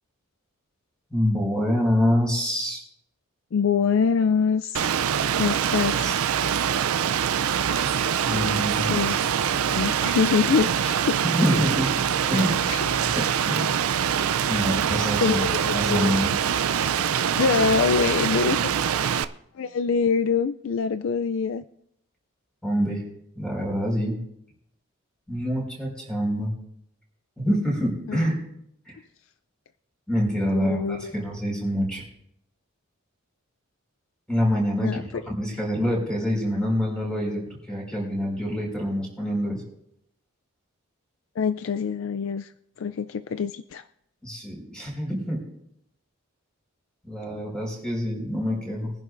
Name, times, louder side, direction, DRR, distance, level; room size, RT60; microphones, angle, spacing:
voice 1, 1.1-2.8 5.7-6.1 8.2-9.0 11.2-11.9 12.3-12.6 13.0-13.7 14.5-15.4 15.7-16.3 22.6-23.0 23.3-24.2 25.3-26.5 27.4-28.4 28.8-29.0 30.1-32.0 34.3-35.0 35.3-37.4 37.7-39.6 44.2-45.4 47.0-48.9, equal, 5° left, -2 dB, 5.0 m, -26 dB
voice 2, 3.5-4.9 5.4-6.2 8.9-9.2 9.7-11.2 12.7-12.8 15.2-16.1 17.4-18.6 19.5-21.6 28.1-28.3 30.4-31.1 34.8-35.0 41.4-42.5 42.8-43.8 47.3-47.4, left 6 dB, 65° left, 11 dB, 0.4 m, -24 dB
Rain, 4.7-19.2, right 8 dB, 80° right, 0.5 m, -24 dB
23.0 x 11.0 x 2.6 m, 0.75 s
head